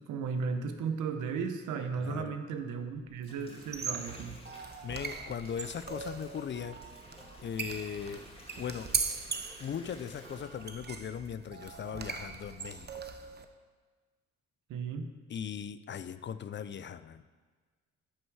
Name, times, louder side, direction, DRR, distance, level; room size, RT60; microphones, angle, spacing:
voice 1, 0.0-4.4 14.7-15.1, right 5 dB, 80° right, 7 dB, 1.0 m, -35 dB
voice 2, 2.0-2.3 4.8-6.8 7.4-8.2 8.6-8.9 9.6-12.9 15.3-17.2, left 8 dB, 40° left, 14 dB, 0.5 m, -39 dB
sound 1, 3.0-11.0 11.3-11.6, left 1 dB, 20° left, 2.4 m, -53 dB
sound 2, 3.6-13.4, right 5 dB, 35° right, 0.8 m, -40 dB
11.0 x 6.0 x 4.7 m, 1.4 s
cardioid pair, 90°, 30 cm